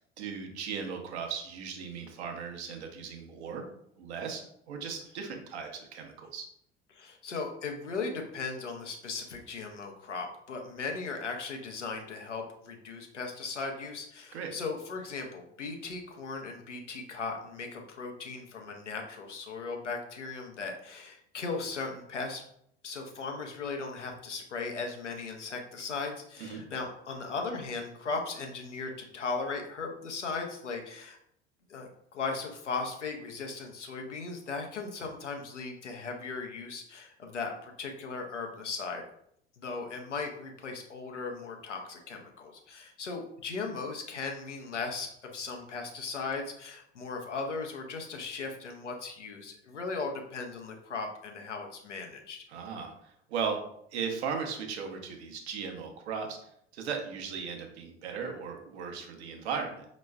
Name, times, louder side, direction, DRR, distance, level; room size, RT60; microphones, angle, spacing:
voice 1, 0.2-3.6 4.0-6.5 14.3-14.5 26.4-26.6 52.5-53.6 53.9-56.4 56.7-59.8, right 6 dB, 70° right, 3 dB, 0.9 m, -37 dB
voice 2, 6.9-22.4 22.8-31.2 31.7-39.0 39.6-52.4, left 4 dB, 85° left, 3 dB, 0.7 m, -37 dB
5.1 x 3.0 x 2.3 m, 0.71 s
figure-of-eight pair, 70°, 35 cm